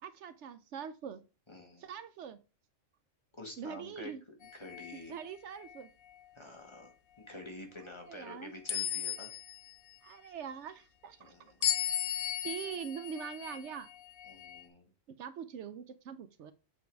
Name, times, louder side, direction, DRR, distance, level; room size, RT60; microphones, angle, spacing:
voice 1, 0.0-1.2 1.8-2.4 3.6-4.2 5.1-5.9 8.1-8.5 10.0-11.3 12.4-13.9 15.1-16.5, right 7 dB, 70° right, 0.9 m, -43 dB
voice 2, 1.5-1.8 3.3-4.1 4.4-5.2 6.3-9.3 11.2-11.6 14.2-14.9, left 2 dB, 25° left, 1.4 m, -48 dB
sound 1, 4.4-5.0 5.6-5.8 8.7-9.7 11.6-14.6, left 10 dB, 55° left, 0.8 m, -36 dB
7.7 x 3.6 x 4.5 m
omnidirectional pair, 1.3 m